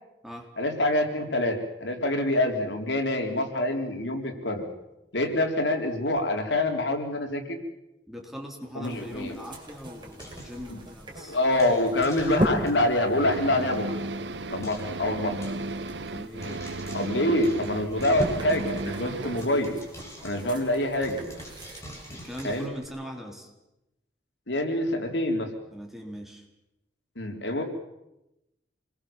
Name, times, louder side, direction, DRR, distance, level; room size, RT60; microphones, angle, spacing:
voice 1, 0.6-4.7 5.1-7.6 8.8-9.4 10.7-10.8 11.2-13.8 14.5-15.4 16.9-19.7 20.2-21.2 22.4-22.7 24.5-25.5 27.2-27.6, left 1 dB, 85° left, 4 dB, 3.9 m, -26 dB
voice 2, 8.1-11.4 16.1-16.6 22.1-23.5 25.7-26.5, equal, ahead, 1 dB, 4.3 m, -40 dB
sound 1, 8.8-22.7, equal, 25° right, 5.6 m, -38 dB
Frying (food), 9.1-11.1 11.6-12.9 13.3-13.4 13.6-13.8 14.0-14.1 14.6-15.0 15.4-15.9 16.4-19.1 19.4-22.8, equal, 15° left, 7.5 m, -46 dB
sound 2, 13.1-19.5, right 2 dB, 80° right, 1.2 m, -34 dB
27.0 x 21.0 x 7.4 m, 0.93 s
head